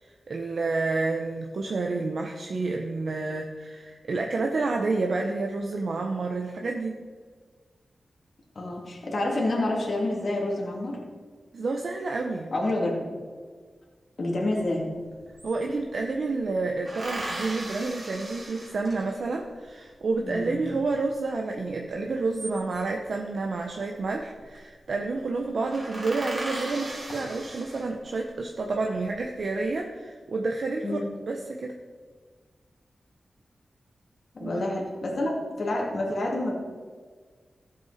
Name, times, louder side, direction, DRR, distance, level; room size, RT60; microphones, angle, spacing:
voice 1, 0.0-7.0 11.5-12.5 15.4-31.0 31.3-31.7 34.4-34.6, right 3 dB, 65° right, 2 dB, 0.9 m, -29 dB
voice 2, 8.5-11.0 12.5-13.0 14.2-14.9 20.2-20.5 30.8-31.1 34.3-36.5, left 1 dB, 55° left, -2 dB, 2.6 m, -28 dB
sound 1, 14.7-14.8 15.0-16.1 16.9-19.4 22.0-23.0 24.2-24.6 24.9-25.0 25.3-25.4 25.7-28.3 28.8-29.5, right 1 dB, 40° right, 2.3 m, -38 dB
14.5 x 7.7 x 4.2 m, 1.5 s
wide cardioid pair, 105°, 0 cm